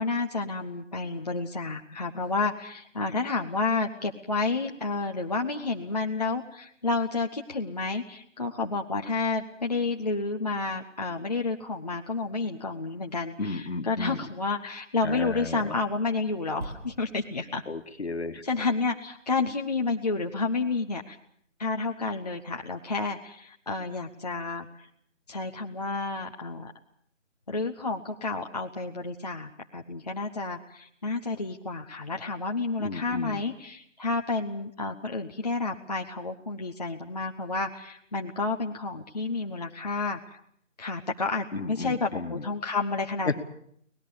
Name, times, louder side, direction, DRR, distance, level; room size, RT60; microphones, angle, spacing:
voice 1, 0.0-17.6 18.4-21.2 21.6-24.9 25.3-26.7 27.5-40.2 40.8-43.4, left 3 dB, 35° left, 2 dB, 0.9 m, -30 dB
voice 2, 13.4-14.2 15.0-15.8 17.7-18.4 32.8-33.4 41.5-42.4 43.3-43.4, left 3 dB, 60° left, 8 dB, 1.9 m, -33 dB
sound 1, 16.6-20.2 20.8-20.9, right 1 dB, 30° right, 3.3 m, -46 dB
24.5 x 19.0 x 6.7 m, 0.66 s
figure-of-eight pair, 165°, 37 cm